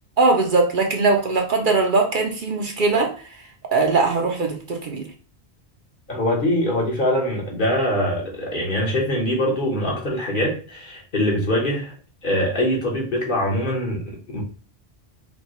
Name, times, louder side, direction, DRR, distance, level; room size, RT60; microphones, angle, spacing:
voice 1, 0.2-3.1 3.7-5.0, right 3 dB, 55° right, 2 dB, 0.8 m, -20 dB
voice 2, 6.1-11.9 12.2-14.4, left 1 dB, 55° left, -2 dB, 1.3 m, -23 dB
5.2 x 2.3 x 3.0 m, 0.39 s
omnidirectional pair, 1.1 m